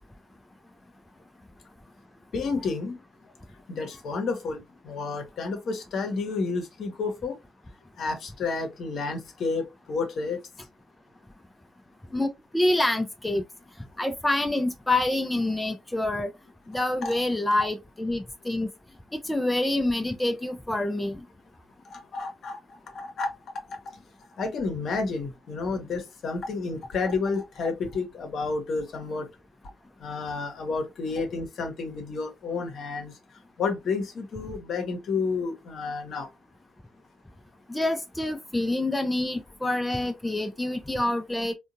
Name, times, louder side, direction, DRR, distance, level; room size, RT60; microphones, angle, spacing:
voice 1, 2.3-3.0 3.7-7.4 8.0-10.4 17.0-17.2 21.9-23.3 23.7-24.0 24.4-29.3 30.0-33.1 33.6-36.3, left 4 dB, 55° left, 0.9 m, -30 dB
voice 2, 12.1-13.4 14.0-16.3 16.7-18.7 19.1-21.2 37.7-41.5, left 1 dB, 10° left, 0.4 m, -27 dB
3.6 x 2.2 x 2.5 m
figure-of-eight pair, 45°, 0 cm